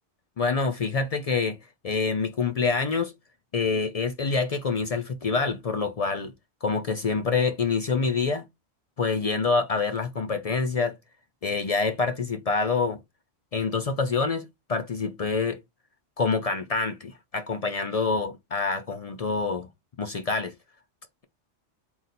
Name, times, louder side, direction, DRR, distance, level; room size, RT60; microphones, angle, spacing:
voice 1, 0.4-1.6 1.8-3.1 3.5-6.3 6.6-8.4 9.0-11.0 11.4-13.0 13.5-15.6 16.2-19.7 20.0-20.5, left 4 dB, 55° left, 0.4 m, -26 dB
3.9 x 2.3 x 4.1 m
omnidirectional pair, 1.2 m